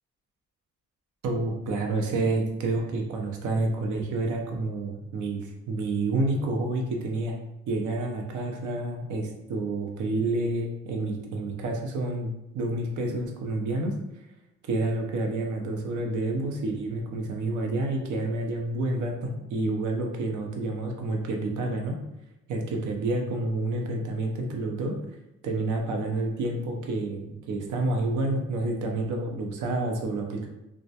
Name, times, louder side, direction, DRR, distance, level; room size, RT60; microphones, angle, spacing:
voice 1, 1.2-7.4 7.7-14.0 14.7-22.0 22.5-25.0 25.4-30.5, right 2 dB, 85° right, 2 dB, 0.6 m, -29 dB
2.3 x 2.1 x 2.7 m, 0.92 s
cardioid pair, 100°, 30 cm